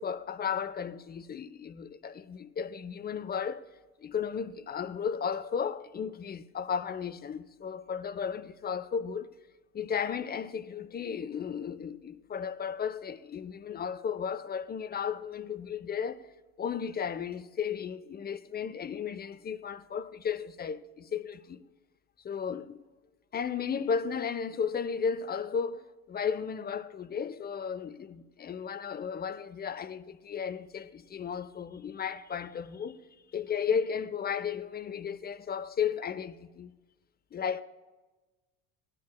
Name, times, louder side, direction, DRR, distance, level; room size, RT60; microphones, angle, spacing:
voice 1, 0.0-3.7 4.0-9.3 9.7-16.2 16.6-21.6 22.2-22.8 23.3-33.0 33.3-36.7 37.3-37.6, left 7 dB, 20° left, 0.6 m, -34 dB
17.0 x 9.8 x 2.3 m
hypercardioid pair, 70°, 43 cm